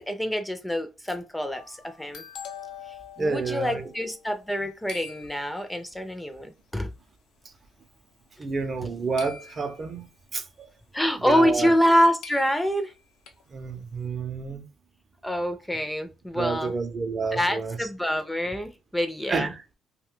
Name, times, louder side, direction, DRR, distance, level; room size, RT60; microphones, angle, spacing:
voice 1, 0.0-2.2 3.2-6.9 10.9-12.9 15.2-16.7 17.3-19.5, equal, 5° left, 0.4 m, -26 dB
sound 1, 1.5-4.6 4.9-5.8 6.7-6.8 7.3-7.7 9.2-10.0 11.4-11.5 11.8-11.9 12.2-13.4, left 7 dB, 85° left, 0.5 m, -44 dB
voice 2, 3.2-3.8 8.4-10.1 10.3-10.7 11.2-11.7 13.5-14.6 16.3-17.8 19.3-19.6, right 4 dB, 40° right, 0.6 m, -29 dB
2.5 x 2.2 x 3.6 m
cardioid pair, 90°, 0 cm